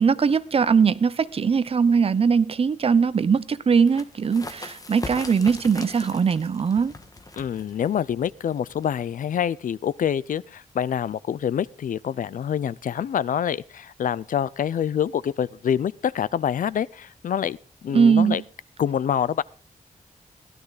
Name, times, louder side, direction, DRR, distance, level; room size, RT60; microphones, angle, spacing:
voice 1, 0.0-6.9 17.9-18.4, right 6 dB, 45° right, 0.7 m, -20 dB
sound 1, 3.7-9.1, left 2 dB, 25° left, 1.5 m, -40 dB
voice 2, 7.4-17.6 17.8-18.4 18.8-19.4, left 9 dB, 80° left, 0.5 m, -26 dB
16.0 x 12.0 x 4.1 m
wide cardioid pair, 155°, 14 cm